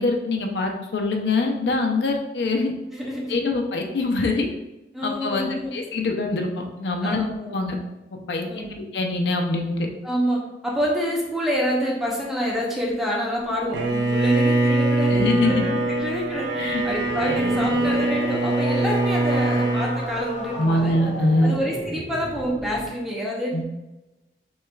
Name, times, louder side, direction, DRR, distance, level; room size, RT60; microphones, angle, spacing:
voice 1, 0.0-2.7 3.3-4.5 5.0-7.2 7.5-7.8 8.1-8.5 8.9-9.9 15.1-15.7 16.6-16.8 20.5-21.5 23.5-23.6, left 2 dB, 75° left, 3 dB, 0.5 m, -23 dB
voice 2, 2.9-3.4 4.9-5.7 7.0-7.5 8.5-8.8 10.0-20.9 21.4-23.6, equal, ahead, -4 dB, 0.6 m, -27 dB
Bowed string instrument, 13.7-20.0, right 2 dB, 90° right, 0.6 m, -23 dB
sound 1, 17.0-22.9, equal, 45° right, 1.4 m, -33 dB
6.1 x 2.3 x 2.3 m, 1.0 s
head